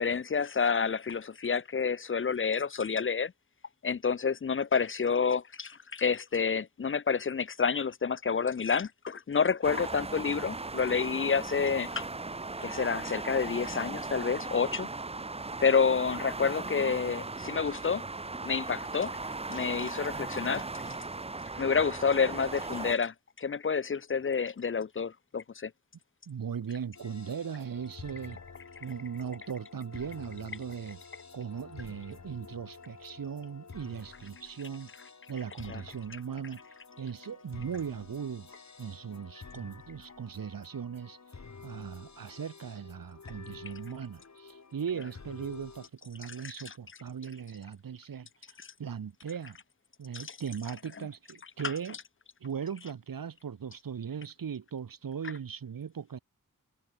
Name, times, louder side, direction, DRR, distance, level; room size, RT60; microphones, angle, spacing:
voice 1, 0.0-3.3 3.8-12.1 12.6-14.9 15.6-18.1 18.4-19.2 19.5-20.6 21.6-25.7 35.7-35.8 46.4-46.7 50.1-50.4, left 5 dB, 40° left, 0.5 m, -29 dB
sound 1, 9.6-22.9, right 3 dB, 20° right, 0.6 m, -38 dB
voice 2, 26.3-28.4 28.8-31.0 31.3-34.9 35.3-36.6 37.0-38.5 38.8-41.2 41.6-48.3 48.8-49.6 50.0-52.0 52.4-56.2, right 7 dB, 90° right, 1.1 m, -38 dB
sound 2, 26.9-45.9, left 4 dB, 55° left, 2.0 m, -50 dB
wide cardioid pair, 55°, 33 cm